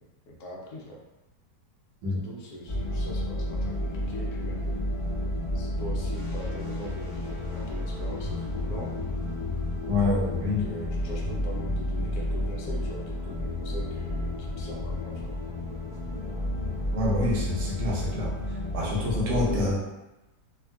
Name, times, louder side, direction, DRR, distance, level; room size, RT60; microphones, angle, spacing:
voice 1, 0.3-1.0 2.1-4.8 5.5-8.9 10.0-15.3 19.0-19.9, equal, 70° left, -2 dB, 1.0 m, -41 dB
sound 1, 2.7-19.7, left 1 dB, 25° right, 0.7 m, -31 dB
voice 2, 9.9-10.6 16.9-18.3 18.7-19.8, left 2 dB, 75° right, -4 dB, 1.3 m, -27 dB
3.5 x 2.3 x 2.2 m, 1.0 s
omnidirectional pair, 1.9 m